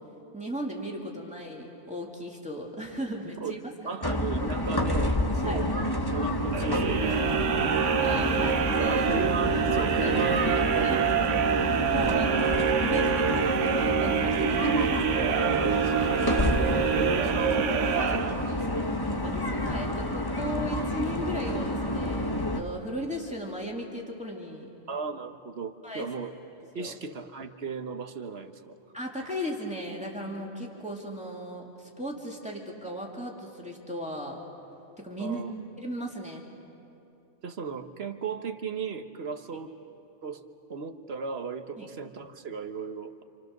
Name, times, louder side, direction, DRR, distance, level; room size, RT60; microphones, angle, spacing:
voice 1, 0.3-4.0 5.4-5.6 8.0-9.1 10.0-11.0 11.6-15.2 19.2-24.7 25.8-26.1 26.8-26.9 28.9-34.4 35.0-35.4 35.8-36.4 41.8-41.9, equal, 5° right, -2 dB, 2.7 m, -36 dB
voice 2, 3.9-7.8 8.8-11.3 15.6-18.9 24.9-26.3 26.7-28.8 35.2-35.5 37.4-39.8 40.2-40.4 40.7-43.2, right 4 dB, 60° right, 7 dB, 1.4 m, -36 dB
sound 1, 4.0-22.6, left 1 dB, 20° left, 1.3 m, -29 dB
sound 2, 6.5-18.8, right 8 dB, 85° right, 1.2 m, -26 dB
28.5 x 27.5 x 6.7 m, 2.8 s
omnidirectional pair, 1.2 m